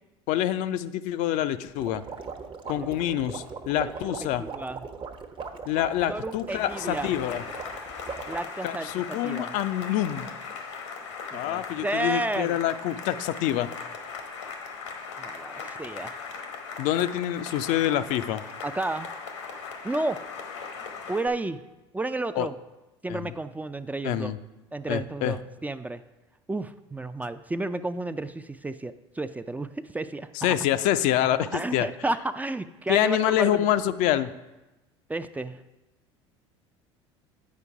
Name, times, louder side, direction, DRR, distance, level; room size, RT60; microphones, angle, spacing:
voice 1, 0.3-2.0 2.7-4.5 5.7-7.4 8.6-10.3 11.3-13.7 16.8-18.4 22.4-22.5 23.1-23.3 24.0-24.4 24.9-25.4 30.3-31.9 32.9-34.3, left 12 dB, 60° left, 11 dB, 0.5 m, -26 dB
sound 1, 1.8-8.4, right 5 dB, 35° right, 0.9 m, -39 dB
voice 2, 3.8-4.1 4.4-4.8 6.1-7.1 8.3-8.9 9.2-9.5 11.3-12.6 15.2-16.2 18.6-19.1 19.8-20.2 21.1-21.6 21.9-22.5 23.0-24.3 24.7-26.0 26.5-30.5 31.5-33.7 35.1-35.6, right 2 dB, 10° right, 10 dB, 0.4 m, -32 dB
Cheering / Applause, 6.5-21.3, left 5 dB, 85° left, 1.1 m, -39 dB
8.4 x 5.1 x 4.8 m, 1.0 s
hypercardioid pair, 70°, 15 cm